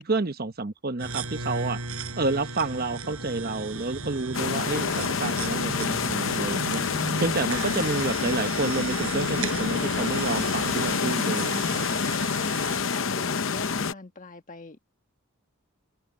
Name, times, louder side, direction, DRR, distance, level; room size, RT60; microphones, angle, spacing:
voice 1, 0.0-1.8 2.2-6.8 7.2-11.8, right 3 dB, 45° right, 1.1 m, -29 dB
sound 1, 1.0-11.0, equal, 20° left, 5.1 m, -45 dB
sound 2, 1.0-12.8, right 4 dB, 75° right, 4.5 m, -36 dB
sound 3, 4.3-13.9, left 5 dB, 60° left, 0.8 m, -27 dB
voice 2, 12.8-14.8, left 2 dB, 35° left, 1.7 m, -41 dB
head